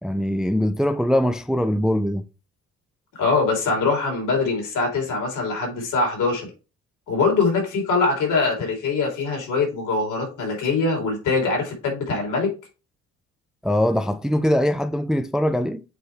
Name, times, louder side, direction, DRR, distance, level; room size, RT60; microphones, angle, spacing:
voice 1, 0.0-2.2 13.6-15.8, equal, ahead, 0.4 m, -22 dB
voice 2, 3.2-6.5 7.1-12.5, left 4 dB, 80° left, 3.7 m, -23 dB
8.0 x 3.4 x 4.6 m
cardioid pair, 90°, 30 cm